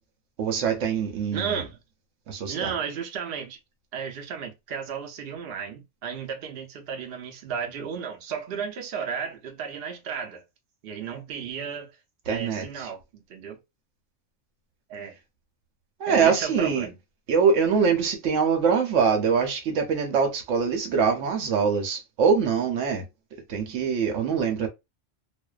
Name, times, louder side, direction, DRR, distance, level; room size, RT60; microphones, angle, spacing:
voice 1, 0.4-1.6 2.3-2.7 12.3-12.9 16.0-16.9 17.3-23.0 23.5-24.7, right 6 dB, 85° right, 1.0 m, -23 dB
voice 2, 1.3-1.8 2.5-3.6 3.9-10.4 10.8-11.9 12.3-13.6 14.9-15.1 16.1-16.9, right 7 dB, 60° right, 0.8 m, -34 dB
2.5 x 2.1 x 2.3 m
omnidirectional pair, 1.2 m